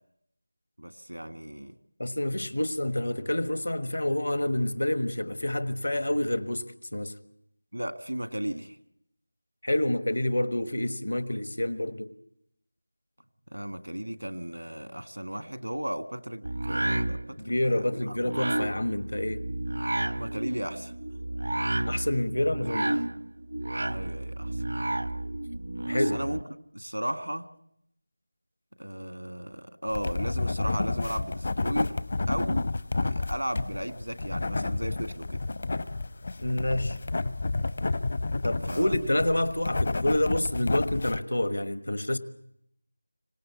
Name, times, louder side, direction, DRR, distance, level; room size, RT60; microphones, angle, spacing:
voice 1, 0.8-1.7 7.7-8.8 13.5-18.2 20.1-20.9 23.9-24.6 25.9-26.4 26.7-27.4 28.8-32.0 32.3-35.4 38.7-39.0, equal, 85° right, 1.6 m, -35 dB
voice 2, 2.0-6.6 6.9-7.1 9.6-12.1 17.4-19.5 21.8-22.9 25.9-26.2 36.4-37.0 38.4-42.2, left 1 dB, 70° left, 1.3 m, -28 dB
sound 1, 16.4-26.4, right 1 dB, 70° right, 0.8 m, -31 dB
sound 2, 29.9-41.2, left 3 dB, 45° left, 0.8 m, -30 dB
25.5 x 17.5 x 8.3 m
figure-of-eight pair, 165°, 0 cm